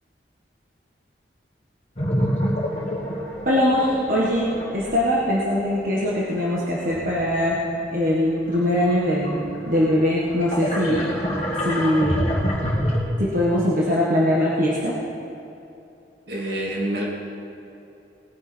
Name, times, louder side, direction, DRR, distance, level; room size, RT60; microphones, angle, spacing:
sound 1, 2.0-7.9 8.4-13.0, equal, 35° left, 2.1 m, -28 dB
voice 1, 3.4-7.6 7.9-11.1 11.6-12.2 13.2-15.0, left 1 dB, 50° right, -6 dB, 1.6 m, -22 dB
voice 2, 16.3-17.0, right 1 dB, 70° right, -2 dB, 2.2 m, -27 dB
19.5 x 9.9 x 4.5 m, 2.8 s
head